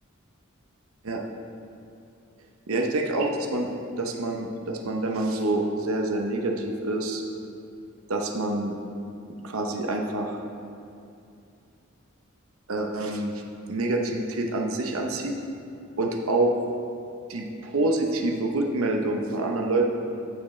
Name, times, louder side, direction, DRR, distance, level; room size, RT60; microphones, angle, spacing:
voice 1, 2.7-3.7 4.0-7.2 8.1-8.7 9.4-10.4 12.7-13.4 13.7-15.3 16.0-16.5 17.3-19.9, right 2 dB, 75° right, 2 dB, 0.8 m, -26 dB
15.0 x 6.1 x 3.2 m, 2.6 s
head